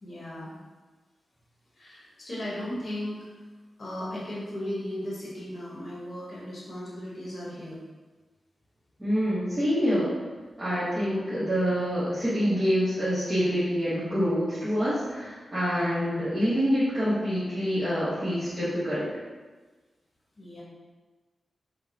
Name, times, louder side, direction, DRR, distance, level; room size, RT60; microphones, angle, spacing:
voice 1, 0.0-0.5 1.8-3.3 3.8-7.8 20.4-20.6, left 1 dB, 45° left, -6 dB, 0.9 m, -36 dB
voice 2, 9.0-10.1 10.6-19.1, equal, 15° right, -13 dB, 0.9 m, -26 dB
4.3 x 2.0 x 2.6 m, 1.3 s
wide cardioid pair, 120°, 0 cm